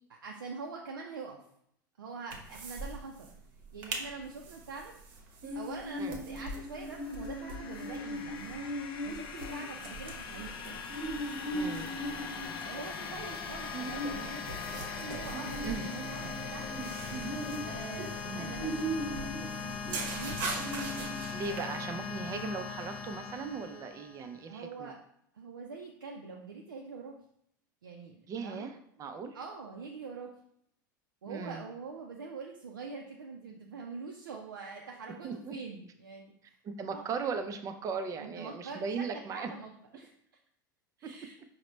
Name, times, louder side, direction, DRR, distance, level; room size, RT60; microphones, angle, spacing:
voice 1, 0.1-1.4 2.0-3.3 3.7-5.0 5.5-8.7 9.0-10.6 12.6-16.8 17.6-20.4 21.4-21.9 24.5-25.0 25.3-27.2 27.8-28.7 29.3-30.3 31.2-36.6 36.9-37.1 38.2-40.1 41.0-41.4, right 4 dB, 90° right, 0 dB, 0.4 m, -44 dB
sound 1, 2.3-2.9 3.2-3.3 3.6-4.0 4.5-21.6, right 1 dB, 60° right, 0.8 m, -38 dB
sound 2, 6.8-24.4, left 5 dB, 45° left, 0.4 m, -40 dB
voice 2, 11.5-11.9 15.6-15.9 18.3-18.5 21.3-24.9 28.3-29.4 31.3-31.6 35.2-35.5 36.6-39.5 41.0-41.1, right 5 dB, 30° right, 7 dB, 0.4 m, -38 dB
4.8 x 2.1 x 3.1 m, 0.71 s
hypercardioid pair, 90°, 11 cm